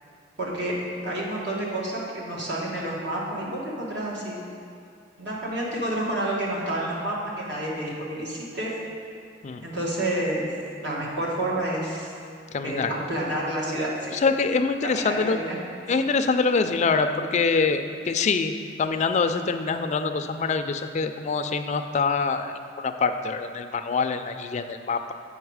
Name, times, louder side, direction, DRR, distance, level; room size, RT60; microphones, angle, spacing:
voice 1, 0.4-0.8 1.0-4.4 5.2-8.7 9.6-10.5 10.8-12.1 12.6-14.1 14.8-15.6, right 1 dB, 65° right, -5 dB, 1.7 m, -29 dB
voice 2, 12.5-12.9 14.1-15.4 15.9-18.5 18.8-25.1, left 4 dB, 40° left, 7 dB, 0.4 m, -25 dB
8.0 x 5.3 x 4.8 m, 2.4 s
head